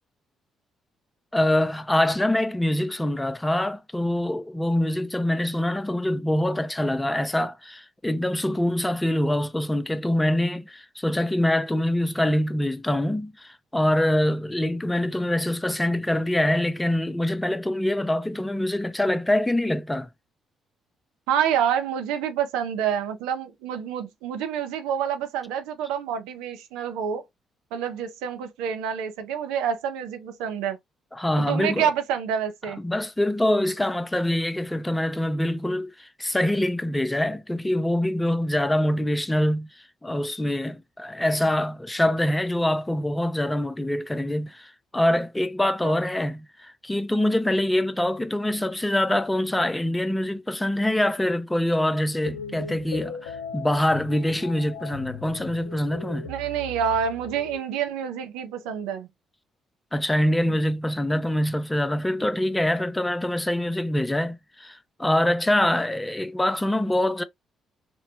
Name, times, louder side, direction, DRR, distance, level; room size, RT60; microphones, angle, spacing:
voice 1, 1.3-20.1 31.1-31.9 32.8-39.7 40.0-56.3 59.9-67.2, left 1 dB, 10° left, 0.5 m, -24 dB
voice 2, 21.3-27.2 27.7-30.8 31.4-32.8 45.8-46.0 56.3-59.1 60.4-60.5, right 8 dB, 75° right, 0.5 m, -27 dB
sound 1, 52.2-57.6, left 4 dB, 85° left, 0.3 m, -38 dB
3.0 x 2.1 x 2.5 m
hypercardioid pair, 45°, 0 cm